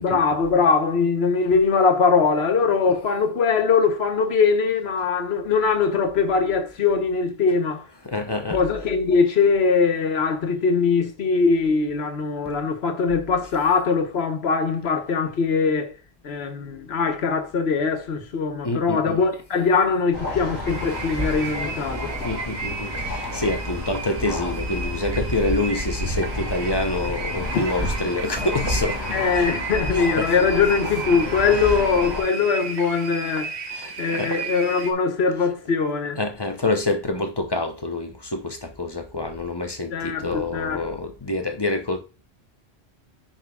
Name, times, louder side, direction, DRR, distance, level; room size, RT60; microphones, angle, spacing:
voice 1, 0.0-7.8 8.5-15.9 16.2-22.1 27.5-27.6 29.1-33.5 34.0-36.2 39.9-40.8, left 5 dB, 75° left, 1.2 m, -21 dB
voice 2, 8.0-8.6 18.6-19.2 22.2-29.5 29.9-30.4 31.5-31.7 33.7-34.4 36.2-42.0, left 2 dB, 25° left, 0.6 m, -27 dB
sound 1, 20.1-32.2, left 1 dB, 10° right, 4.4 m, -30 dB
sound 2, 20.7-34.9, right 4 dB, 85° right, 1.2 m, -34 dB
10.0 x 5.0 x 2.3 m
omnidirectional pair, 1.1 m